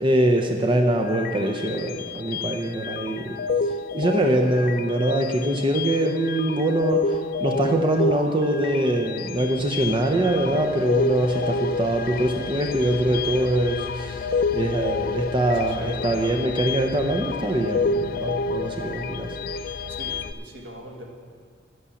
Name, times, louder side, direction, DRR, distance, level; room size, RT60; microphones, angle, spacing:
voice 1, 0.0-3.4 3.6-19.7, right 1 dB, 25° right, 2 dB, 0.7 m, -23 dB
sound 1, 1.0-20.3, left 3 dB, 50° left, 0.4 m, -29 dB
voice 2, 15.5-16.1 19.9-21.1, equal, 80° right, 0 dB, 1.8 m, -41 dB
11.0 x 8.4 x 7.1 m, 2.2 s
head